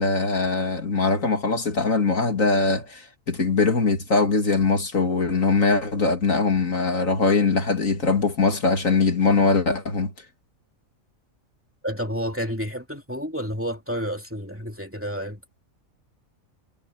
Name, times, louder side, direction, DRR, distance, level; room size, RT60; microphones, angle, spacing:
voice 1, 0.0-10.1, left 4 dB, 70° left, 3.0 m, -22 dB
voice 2, 11.8-15.4, equal, 10° right, 2.8 m, -30 dB
omnidirectional pair, 1.4 m